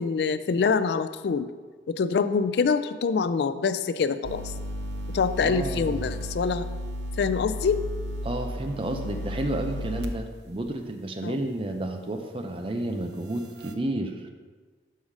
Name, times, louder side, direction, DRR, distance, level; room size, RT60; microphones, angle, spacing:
voice 1, 0.0-1.5 1.9-4.5 5.1-6.7 7.2-7.8 11.2-11.3, left 5 dB, 65° left, 12 dB, 0.3 m, -25 dB
sound 1, 4.2-10.1 10.6-10.7 13.4-13.7, equal, 70° right, 0.6 m, -34 dB
voice 2, 5.4-6.0 8.2-14.3, right 1 dB, 30° right, 5 dB, 0.6 m, -31 dB
5.6 x 5.0 x 6.1 m, 1.4 s
head